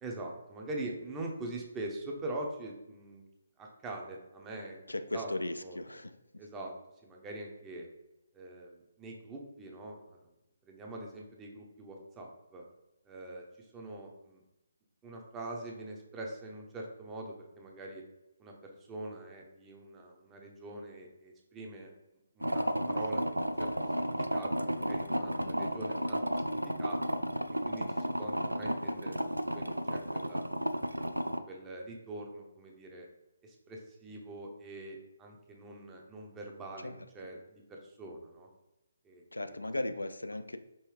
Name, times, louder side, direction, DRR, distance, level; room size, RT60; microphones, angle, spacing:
voice 1, 0.0-3.2 3.6-4.8 5.1-5.3 5.6-5.8 6.4-6.7 7.0-7.9 8.3-10.2 10.7-12.6 13.0-13.4 13.7-14.4 15.0-18.0 18.4-21.9 22.4-23.7 24.0-26.2 26.5-27.0 27.7-29.2 29.5-30.5 31.1-33.1 33.4-36.9 37.1-38.5 39.0-39.2, right 2 dB, 15° right, 0 dB, 0.7 m, -43 dB
voice 2, 4.9-6.1 25.4-25.7 36.8-37.1 39.3-40.6, left 1 dB, 80° left, 9 dB, 0.3 m, -37 dB
sound 1, 22.4-31.4, equal, 90° right, 0.3 m, -33 dB
5.4 x 2.7 x 3.2 m, 0.94 s
figure-of-eight pair, 140°, 0 cm